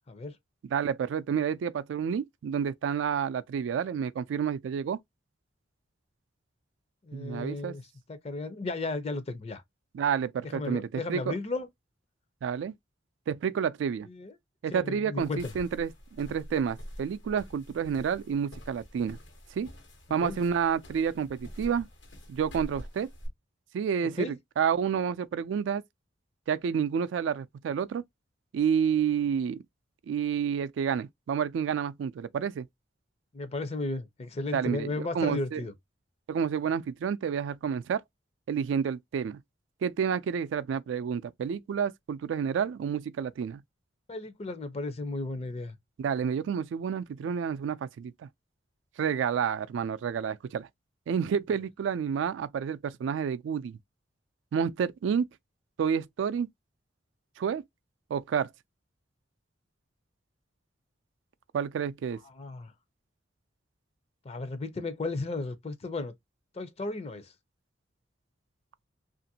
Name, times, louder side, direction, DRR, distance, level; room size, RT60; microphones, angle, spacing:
voice 1, 0.7-5.0 7.1-7.7 9.9-11.3 12.4-12.7 13.3-14.1 14.6-19.2 19.6-19.7 20.1-21.9 22.3-23.1 23.7-25.8 26.5-28.0 28.5-29.6 30.1-32.7 34.5-35.6 36.3-38.0 38.5-39.4 39.8-43.6 46.0-48.3 49.0-50.7 51.1-53.8 54.5-55.3 55.8-56.5 57.4-57.6 58.1-58.5 61.5-62.2, right 7 dB, 80° right, 0.3 m, -29 dB
voice 2, 7.0-7.8 8.1-9.6 10.4-11.7 14.0-14.3 14.7-15.5 20.2-20.4 24.2-24.4 33.3-35.7 44.1-45.8 62.2-62.7 64.2-66.1 66.5-67.3, left 2 dB, 35° left, 0.5 m, -34 dB
sound 1, 15.2-23.3, equal, 85° left, 1.2 m, -46 dB
2.9 x 2.5 x 2.7 m
head